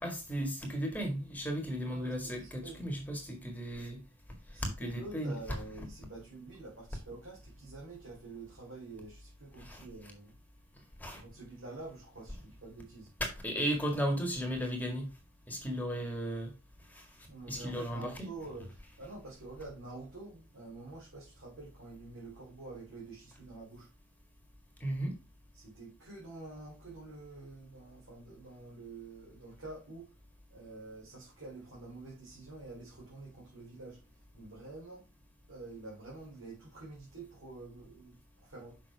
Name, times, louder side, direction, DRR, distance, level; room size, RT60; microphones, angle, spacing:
voice 1, 0.0-4.0 4.6-5.3 9.6-9.9 11.0-11.2 13.4-15.1 15.5-16.5 16.9-17.1 17.5-18.3 24.8-25.1, equal, 10° left, 1.8 m, -35 dB
voice 2, 1.9-2.9 4.5-10.4 11.2-13.1 17.3-23.9 25.5-30.1 30.5-35.1 35.5-38.8, right 3 dB, 65° right, 3.4 m, -48 dB
6.5 x 5.7 x 3.4 m
head